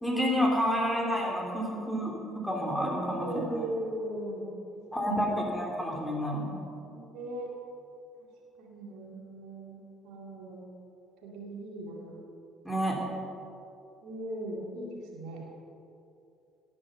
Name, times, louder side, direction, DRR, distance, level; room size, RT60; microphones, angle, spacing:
voice 1, 0.0-3.4 4.9-6.6 12.6-13.0, equal, 5° left, -2 dB, 3.1 m, -29 dB
voice 2, 3.2-4.5 4.7-5.4 5.8-6.0 6.8-7.5 8.6-9.8 10.0-10.6 11.2-12.2 14.0-15.4, right 1 dB, 60° right, -2 dB, 2.2 m, -39 dB
17.5 x 8.7 x 5.6 m, 2.7 s
figure-of-eight pair, 50°, 0 cm